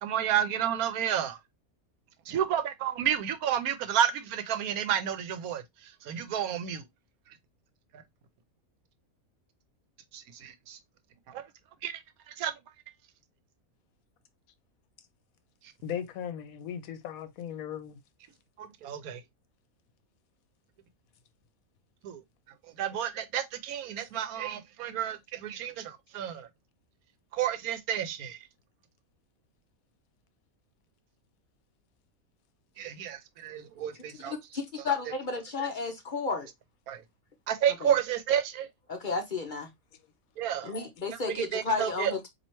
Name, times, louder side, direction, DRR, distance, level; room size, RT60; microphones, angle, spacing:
voice 1, 0.0-1.4 2.3-5.6 6.1-6.8 10.1-10.8 11.3-11.4 11.8-11.9 12.3-12.5 18.6-19.2 22.0-22.2 22.8-26.5 27.3-28.4 32.8-34.3 36.9-37.0 37.5-38.7 40.4-40.7 41.3-42.1, right 9 dB, 80° right, 1.1 m, -30 dB
voice 2, 15.8-18.0, left 9 dB, 80° left, 1.0 m, -37 dB
voice 3, 34.2-36.5 37.8-37.9 38.9-39.7 40.6-42.3, left 4 dB, 50° left, 0.6 m, -32 dB
4.3 x 2.8 x 2.9 m
omnidirectional pair, 1.5 m